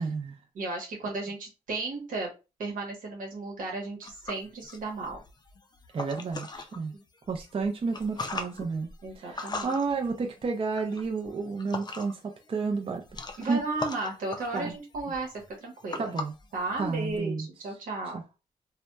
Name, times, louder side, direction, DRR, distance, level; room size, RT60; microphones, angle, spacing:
voice 1, 0.0-0.4 5.9-6.9 7.3-8.9 9.2-13.2 13.5-13.6 14.5-14.7 16.0-16.3 16.8-17.5 18.1-18.2, right 4 dB, 40° right, 0.5 m, -31 dB
voice 2, 0.5-2.3 2.6-5.2 6.9-7.0 9.0-9.7 13.4-16.1 16.5-18.2, right 2 dB, 90° right, 0.9 m, -34 dB
sound 1, 4.0-6.8 7.2-12.3 12.6-17.2, left 3 dB, 30° left, 0.4 m, -40 dB
2.7 x 2.1 x 2.2 m
cardioid pair, 70°, 14 cm